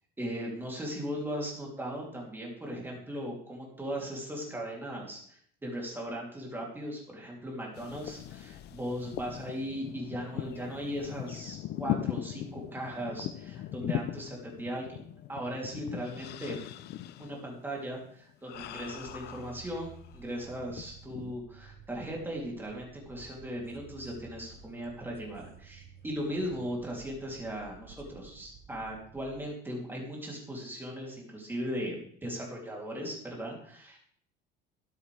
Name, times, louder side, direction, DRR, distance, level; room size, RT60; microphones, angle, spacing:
voice 1, 0.2-16.6 17.2-34.0, equal, 10° right, -2 dB, 3.0 m, -38 dB
sound 1, 7.7-20.2 20.6-21.4, left 12 dB, 55° left, 0.5 m, -40 dB
sound 2, 18.5-29.4, right 5 dB, 45° right, 1.0 m, -53 dB
13.0 x 10.5 x 3.4 m, 0.62 s
cardioid pair, 160°, 21 cm